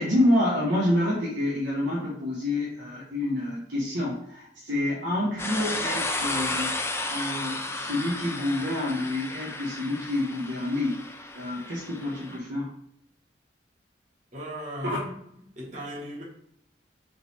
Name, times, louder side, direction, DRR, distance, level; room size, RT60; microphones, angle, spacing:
voice 1, 0.0-6.8 7.1-11.1 11.3-12.7 14.8-15.0, left 1 dB, 70° right, -5 dB, 1.0 m, -28 dB
sound 1, 5.4-12.4, left 2 dB, 15° left, 0.3 m, -33 dB
voice 2, 14.3-16.2, equal, 40° right, -4 dB, 1.2 m, -38 dB
3.9 x 3.0 x 4.1 m, 0.71 s
head